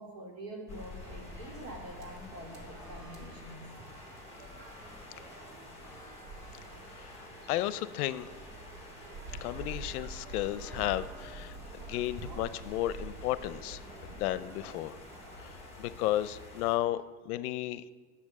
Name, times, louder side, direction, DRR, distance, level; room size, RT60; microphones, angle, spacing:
voice 1, 0.0-3.6, right 1 dB, 60° right, 0 dB, 2.9 m, -45 dB
sound 1, 0.7-16.8, left 2 dB, 5° right, 2.0 m, -50 dB
sound 2, 1.0-15.6, right 3 dB, 75° right, 3.4 m, -48 dB
voice 2, 6.9-8.3 9.4-13.8 14.2-15.0 15.4-17.8, left 14 dB, 70° left, 15 dB, 0.6 m, -33 dB
10.5 x 7.1 x 7.3 m, 1.4 s
supercardioid pair, 180°, 46 cm